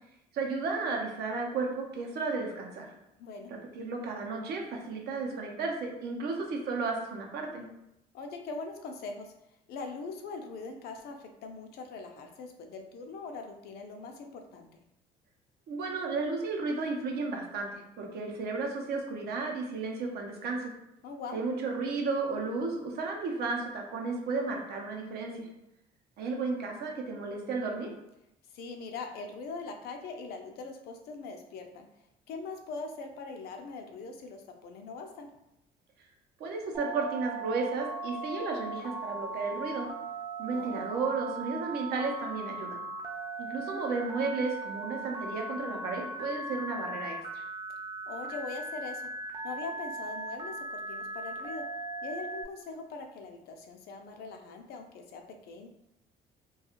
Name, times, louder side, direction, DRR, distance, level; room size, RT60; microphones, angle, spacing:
voice 1, 0.3-2.9 3.5-7.6 15.7-20.7 21.3-25.5 26.2-27.9 36.4-39.9 40.4-42.8 43.4-47.4, right 3 dB, 70° right, 0 dB, 0.6 m, -33 dB
voice 2, 3.2-3.5 8.1-9.3 9.7-14.7 21.0-21.4 28.5-31.9 32.3-35.3 40.5-40.9 48.1-49.1 49.4-51.6 52.0-55.7, left 4 dB, 70° left, 4 dB, 0.5 m, -41 dB
Telephone, 36.7-52.4, right 2 dB, 20° right, 0.5 m, -39 dB
2.4 x 2.3 x 2.9 m, 0.84 s
cardioid pair, 110°, 17 cm